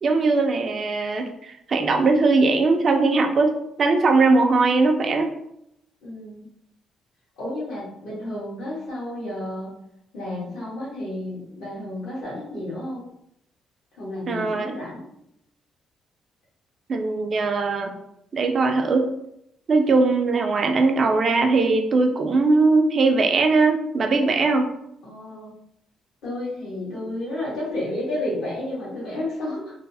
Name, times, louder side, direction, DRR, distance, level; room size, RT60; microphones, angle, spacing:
voice 1, 0.0-5.3 14.3-14.7 16.9-18.0 18.3-19.1 19.7-24.7, right 3 dB, 50° right, 4 dB, 0.4 m, -20 dB
voice 2, 6.0-6.5 7.4-9.7 10.1-13.0 14.0-15.0 25.0-25.5 26.2-29.7, left 1 dB, 80° left, -7 dB, 1.5 m, -31 dB
3.1 x 2.0 x 2.7 m, 0.78 s
cardioid pair, 90°, 0 cm